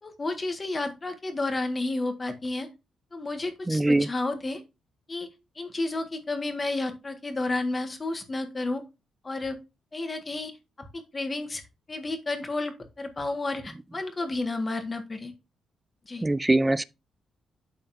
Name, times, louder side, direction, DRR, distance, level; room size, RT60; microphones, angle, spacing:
voice 1, 0.0-2.7 3.1-4.6 5.1-5.3 5.5-8.8 9.2-9.6 9.9-10.5 10.8-10.9 11.1-11.6 11.9-15.3 16.0-16.2, left 2 dB, 30° left, 1.7 m, -31 dB
voice 2, 3.7-4.1 16.2-16.8, right 2 dB, 15° right, 0.4 m, -22 dB
12.0 x 4.1 x 2.7 m
cardioid pair, 100°, 0 cm